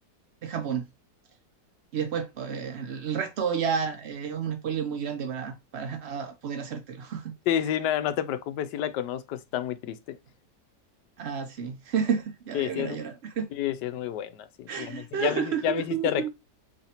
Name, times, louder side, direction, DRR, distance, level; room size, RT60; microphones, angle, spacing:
voice 1, 0.4-0.9 1.9-7.3 11.2-13.5 14.7-16.3, right 7 dB, 75° right, 0.6 m, -31 dB
voice 2, 7.5-10.2 12.5-13.0 13.5-16.3, left 11 dB, 80° left, 1.2 m, -29 dB
4.1 x 3.2 x 2.8 m
omnidirectional pair, 1.8 m